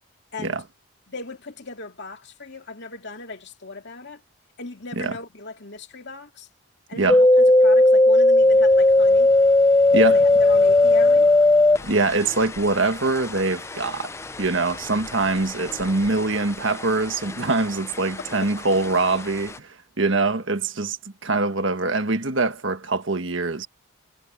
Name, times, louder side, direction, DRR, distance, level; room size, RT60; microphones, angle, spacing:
voice 1, 1.1-4.2 4.6-6.5 6.9-9.3 10.0-11.3 18.4-18.5, left 3 dB, 50° left, 2.8 m, -38 dB
sound 1, 7.1-16.5 16.7-17.6 18.0-18.9 19.3-19.4, left 2 dB, 10° left, 0.4 m, -17 dB
sound 2, 8.4-16.5, left 3 dB, 70° left, 4.0 m, -45 dB
voice 2, 11.8-14.1 14.4-21.0 21.2-23.7, right 3 dB, 55° right, 1.5 m, -23 dB
head